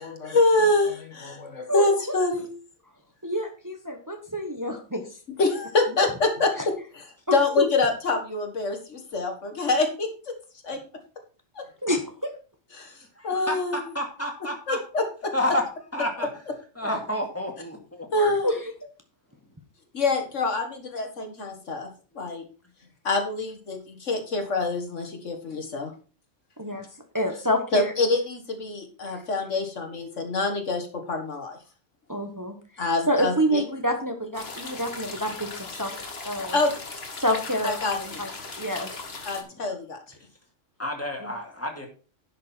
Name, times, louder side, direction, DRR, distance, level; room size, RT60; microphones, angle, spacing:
voice 1, 0.0-2.5 5.4-6.7 7.3-10.3 10.6-10.8 11.6-11.7 12.7-13.0 13.2-13.8 14.7-15.3 18.1-18.5 19.9-21.9 22.2-22.4 23.0-25.9 27.7-31.6 32.8-33.6 36.5-36.7 37.6-38.2 39.3-40.0, left 3 dB, 75° left, 4 dB, 2.0 m, -26 dB
voice 2, 3.2-5.0 6.6-6.7 7.3-7.7 11.8-12.3 18.4-18.6 26.6-26.8 27.1-27.9 29.1-29.2 32.1-35.9 36.2-36.6 37.2-38.3 38.6-38.9 41.2-41.3, equal, 15° right, 4 dB, 1.2 m, -28 dB
voice 3, 13.2-14.8 15.3-15.7 15.9-16.3 16.8-18.3 26.7-26.8 39.5-39.6 40.8-41.9, left 1 dB, 10° left, 2 dB, 2.2 m, -30 dB
sound 1, 34.3-39.4, left 3 dB, 55° left, 1.8 m, -38 dB
10.5 x 6.5 x 4.4 m, 0.37 s
omnidirectional pair, 1.3 m